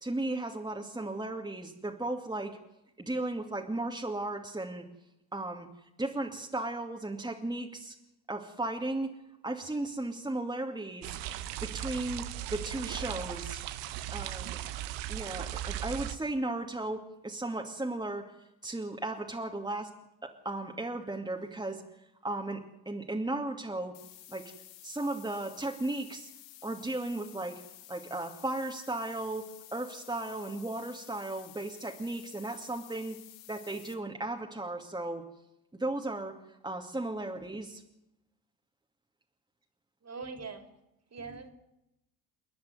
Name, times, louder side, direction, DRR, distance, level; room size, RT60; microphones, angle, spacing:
voice 1, 0.0-2.6 3.0-4.8 5.3-5.7 6.0-8.0 8.3-9.2 9.4-11.2 11.6-13.6 14.1-14.6 15.1-18.3 18.6-19.9 20.2-21.8 22.2-22.6 22.9-24.0 24.3-24.5 24.8-26.3 26.6-27.6 27.9-33.2 33.5-35.2 35.8-36.3 36.6-37.8, right 2 dB, 10° right, 1 dB, 2.7 m, -35 dB
sound 1, 11.0-16.2, right 13 dB, 65° right, 1.4 m, -37 dB
voice 2, 12.8-13.1 40.0-40.7 41.1-41.5, right 4 dB, 35° right, 7 dB, 3.8 m, -43 dB
sound 2, 23.9-33.9, left 13 dB, 70° left, 2.0 m, -52 dB
29.0 x 10.0 x 9.6 m, 0.88 s
hypercardioid pair, 55°, 46 cm